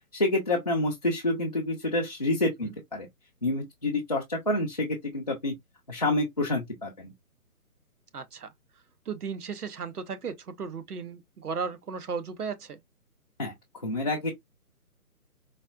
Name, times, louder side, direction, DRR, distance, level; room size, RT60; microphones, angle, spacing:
voice 1, 0.1-3.1 3.4-5.5 5.9-7.1 13.4-13.5 13.8-14.3, left 2 dB, 25° left, 0.5 m, -28 dB
voice 2, 8.1-8.5 9.1-12.8, right 5 dB, 75° right, 0.8 m, -35 dB
4.2 x 2.4 x 2.3 m
figure-of-eight pair, 145°, 45 cm